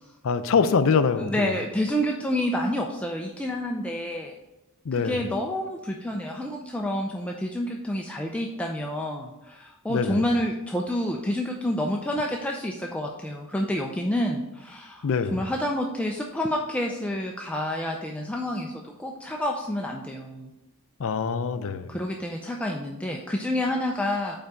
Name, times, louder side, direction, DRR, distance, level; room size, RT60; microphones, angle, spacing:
voice 1, 0.2-1.5 4.9-5.2 9.9-10.2 15.0-15.4 21.0-22.0, left 5 dB, 65° left, 0.5 m, -24 dB
voice 2, 1.2-4.4 4.9-20.5 21.9-24.4, left 1 dB, 5° left, 0.4 m, -29 dB
5.6 x 4.6 x 5.1 m
head